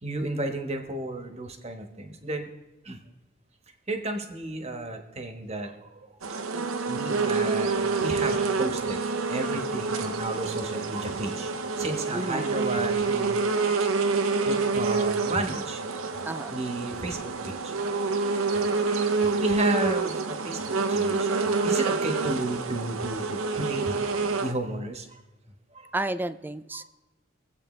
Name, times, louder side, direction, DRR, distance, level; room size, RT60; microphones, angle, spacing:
voice 1, 0.0-2.5 2.8-3.0 3.9-6.1 6.9-9.0 9.3-11.5 11.8-13.8 14.4-15.9 16.5-17.7 18.7-18.9 19.2-21.3 21.6-25.2 25.7-25.9 26.7-26.8, right 2 dB, 30° right, 5 dB, 1.3 m, -33 dB
sound 1, 6.2-24.5, right 4 dB, 90° right, 0.8 m, -27 dB
voice 2, 12.1-12.5 16.2-16.6 25.9-26.9, right 1 dB, 10° right, 13 dB, 0.3 m, -31 dB
24.0 x 8.1 x 3.2 m, 1.1 s
head